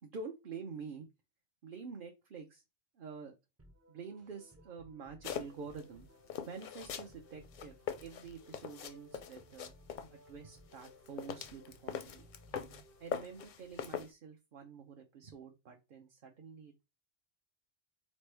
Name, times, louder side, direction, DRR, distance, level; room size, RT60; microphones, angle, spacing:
voice 1, 0.0-1.1 1.6-2.6 2.9-3.3 3.9-6.1 6.5-9.7 10.1-12.3 13.0-16.8, right 5 dB, 55° right, 3 dB, 0.8 m, -48 dB
sound 1, 3.6-13.7, equal, 25° right, 0.3 m, -60 dB
sound 2, 5.2-5.8 6.3-7.1 7.4-10.1 10.7-12.8 13.1-14.1, left 8 dB, 60° left, 0.5 m, -41 dB
4.2 x 3.1 x 3.3 m, 0.25 s
omnidirectional pair, 1.1 m